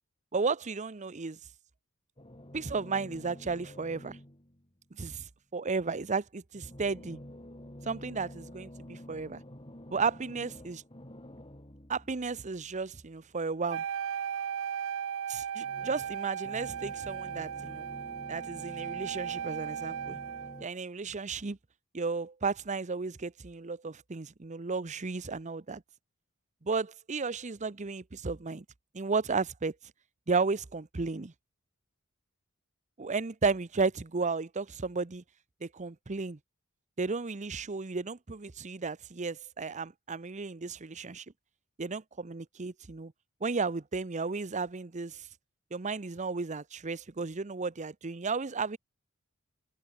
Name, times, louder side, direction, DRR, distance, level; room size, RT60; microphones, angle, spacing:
voice 1, 0.3-1.4 2.5-4.2 5.0-7.2 7.8-9.4 9.9-10.8 11.9-13.8 15.3-17.8 18.3-20.2 20.6-21.6 21.9-25.8 26.6-28.6 28.9-29.7 30.3-31.3 33.0-35.2 35.6-36.4 37.0-41.2 41.8-43.1 43.4-45.3 45.7-48.8, right 4 dB, 35° right, 0.7 m, -34 dB
sound 1, 2.2-4.7 6.5-13.6 15.6-20.7, left 1 dB, 25° left, 4.4 m, -49 dB
Wind instrument woodwind instrument, 13.7-20.6, right 8 dB, 60° right, 0.4 m, -36 dB
head